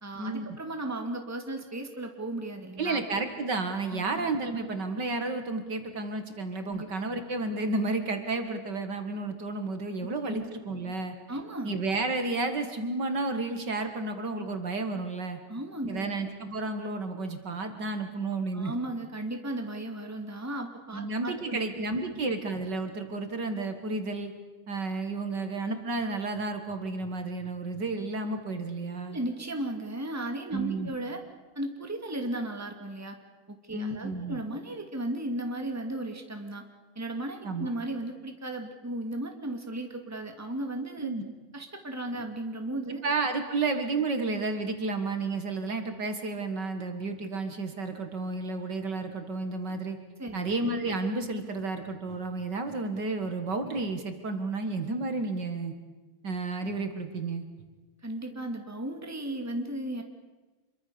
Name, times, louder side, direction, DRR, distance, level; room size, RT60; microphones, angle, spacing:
voice 1, 0.0-3.0 3.9-4.3 6.7-6.9 10.2-10.5 11.3-11.7 15.5-16.2 18.5-21.6 22.1-22.2 29.1-31.2 31.6-33.2 33.5-36.6 37.0-41.1 41.5-43.0 50.2-50.4 58.0-60.0, right 1 dB, 10° right, 4 dB, 2.3 m, -35 dB
voice 2, 2.8-11.2 11.6-15.4 15.9-18.7 20.9-24.3 24.7-29.2 30.5-30.9 33.7-34.4 37.4-37.7 41.0-41.2 43.0-50.0 50.3-55.7 56.2-57.4, right 3 dB, 55° right, 7 dB, 2.4 m, -31 dB
26.5 x 23.5 x 7.0 m, 1.2 s
omnidirectional pair, 2.2 m